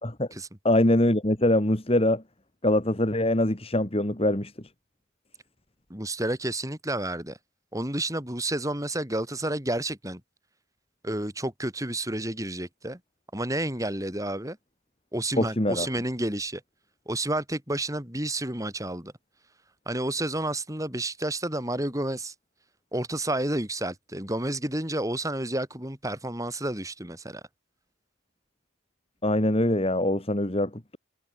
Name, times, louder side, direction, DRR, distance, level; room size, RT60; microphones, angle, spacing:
voice 1, 0.6-2.2 2.6-4.5 15.4-15.9 29.2-31.0, left 1 dB, 30° left, 2.1 m, -23 dB
voice 2, 5.9-7.4 7.7-10.2 11.0-13.0 13.3-14.6 15.1-16.6 17.1-19.1 19.9-22.3 22.9-27.4, right 1 dB, 15° right, 5.5 m, -30 dB
head